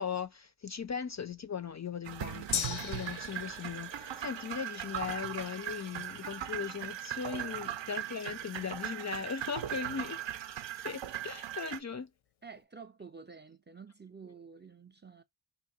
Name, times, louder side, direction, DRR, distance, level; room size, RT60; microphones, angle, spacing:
voice 1, 0.0-10.2 10.8-12.1, left 6 dB, 40° left, 0.4 m, -38 dB
sound 1, 2.1-11.8, right 11 dB, 70° right, 0.6 m, -39 dB
Gong, 2.5-10.3 10.6-10.7, left 8 dB, 85° left, 0.6 m, -43 dB
voice 2, 7.4-7.8 10.7-11.0 11.7-11.9 12.4-15.2, right 5 dB, 25° right, 0.4 m, -51 dB
2.8 x 2.5 x 3.9 m
wide cardioid pair, 70°, 47 cm